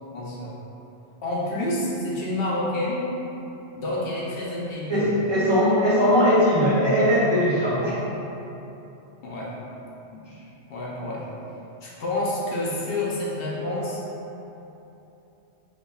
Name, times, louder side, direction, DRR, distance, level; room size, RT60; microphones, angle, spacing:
voice 1, 0.1-0.5 1.2-3.1 3.8-5.1 9.2-9.5 10.1-10.2 10.7-11.2 11.8-14.0, left 1 dB, 60° left, -6 dB, 0.8 m, -28 dB
voice 2, 4.9-8.0, equal, 30° right, -11 dB, 0.5 m, -20 dB
5.5 x 2.6 x 2.3 m, 2.9 s
omnidirectional pair, 1.2 m